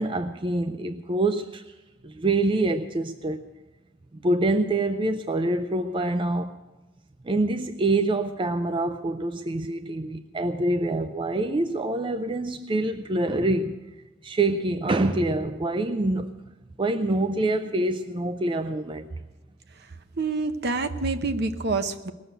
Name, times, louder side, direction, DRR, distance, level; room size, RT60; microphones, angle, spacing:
voice 1, 0.0-1.7 2.0-3.4 4.2-6.5 7.2-13.8 14.2-16.4 16.8-19.1, right 2 dB, 25° right, 9 dB, 0.4 m, -26 dB
voice 2, 20.2-22.1, right 3 dB, 55° right, 9 dB, 0.8 m, -27 dB
19.5 x 6.8 x 8.8 m, 1.1 s
head